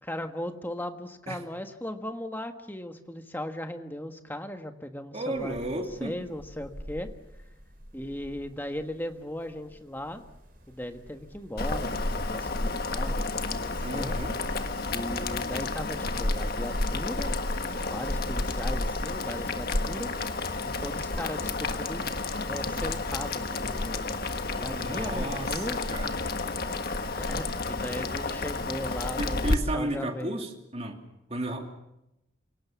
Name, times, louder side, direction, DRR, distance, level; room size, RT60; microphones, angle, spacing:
voice 1, 0.0-7.1 7.9-10.2 10.7-14.2 14.9-17.4 17.8-20.1 20.6-22.2 22.4-25.8 27.1-30.4, left 1 dB, 10° left, 6 dB, 1.5 m, -37 dB
voice 2, 5.1-6.1 13.8-14.4 24.7-26.1 29.2-31.0 31.3-31.7, right 1 dB, 30° right, 3 dB, 2.8 m, -33 dB
sound 1, 5.3-25.0, equal, 45° right, 5.7 m, -49 dB
Boiling, 11.6-29.5, left 2 dB, 50° left, 1.5 m, -31 dB
28.0 x 18.0 x 7.4 m, 0.88 s
head